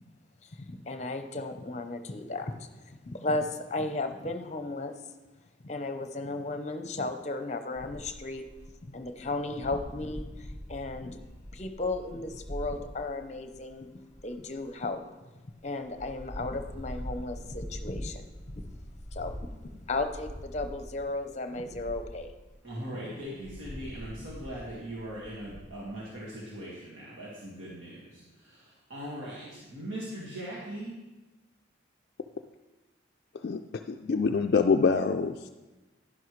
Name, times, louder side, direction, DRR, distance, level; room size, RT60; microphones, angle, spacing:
voice 1, 0.6-5.0 5.6-8.4 8.8-11.2 11.5-13.9 14.2-15.0 15.6-18.2 18.5-18.7 19.1-22.3 22.9-23.2, left 2 dB, 35° left, 8 dB, 0.7 m, -35 dB
sound 1, 7.8-14.9 15.5-21.0 21.4-22.4 23.1-26.0, equal, 40° right, 3.2 m, -43 dB
voice 2, 22.6-30.9, right 1 dB, 80° right, -6 dB, 1.8 m, -40 dB
voice 3, 33.4-35.5, left 5 dB, 50° left, 5 dB, 0.3 m, -26 dB
11.0 x 11.0 x 3.2 m, 1.1 s
head